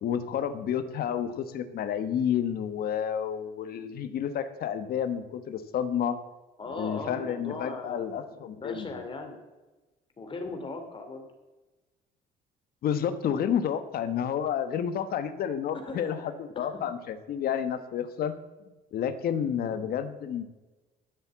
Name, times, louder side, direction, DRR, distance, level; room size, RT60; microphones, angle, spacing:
voice 1, 0.0-6.2 6.7-8.9 12.8-18.4 18.9-20.4, left 8 dB, 65° left, 11 dB, 1.2 m, -30 dB
voice 2, 6.6-9.4 10.2-11.3 15.7-16.8 19.6-19.9, left 3 dB, 30° left, 5 dB, 2.8 m, -39 dB
12.5 x 7.4 x 8.1 m, 1.1 s
cardioid pair, 110°, 17 cm